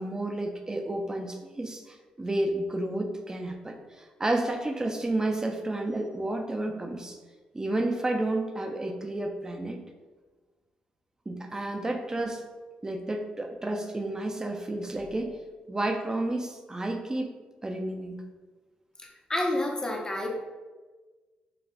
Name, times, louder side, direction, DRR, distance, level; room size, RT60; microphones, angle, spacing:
voice 1, 0.0-7.2 7.5-9.8 11.3-12.4 12.8-15.4 15.7-17.3 17.6-18.2, right 1 dB, 20° right, 4 dB, 0.4 m, -31 dB
voice 2, 19.3-20.3, left 1 dB, 20° left, 0 dB, 0.7 m, -28 dB
4.0 x 2.3 x 2.2 m, 1.3 s
supercardioid pair, 65°, 3 cm